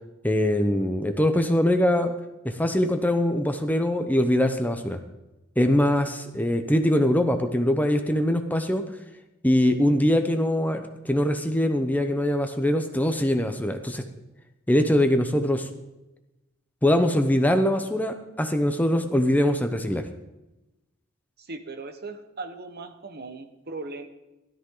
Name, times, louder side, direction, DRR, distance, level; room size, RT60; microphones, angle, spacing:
voice 1, 0.2-2.1 2.4-5.0 5.6-8.8 9.4-14.0 14.7-15.7 16.8-20.1, left 1 dB, 10° left, 7 dB, 0.8 m, -22 dB
voice 2, 21.4-24.1, right 3 dB, 50° right, 7 dB, 1.2 m, -38 dB
16.5 x 13.0 x 3.9 m, 0.99 s
head